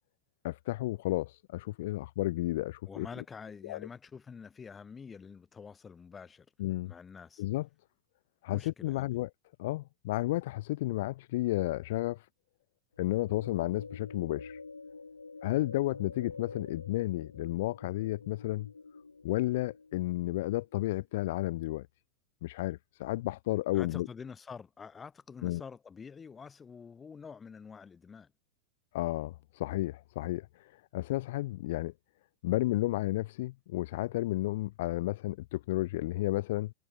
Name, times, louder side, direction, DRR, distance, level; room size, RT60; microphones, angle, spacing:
voice 1, 0.4-3.1 3.6-3.8 6.6-6.9 7.4-7.7 8.4-9.3 9.6-12.2 13.0-14.6 15.4-18.7 19.2-21.9 22.4-24.1 25.4-25.6 28.9-31.9 32.4-36.7, left 17 dB, 55° left, 0.7 m, -32 dB
voice 2, 2.9-6.5 6.8-7.4 8.5-9.1 23.7-28.3, left 6 dB, 15° left, 6.7 m, -47 dB
sound 1, 13.0-20.3, left 4 dB, 80° left, 2.8 m, -48 dB
figure-of-eight pair, 90°, 0 cm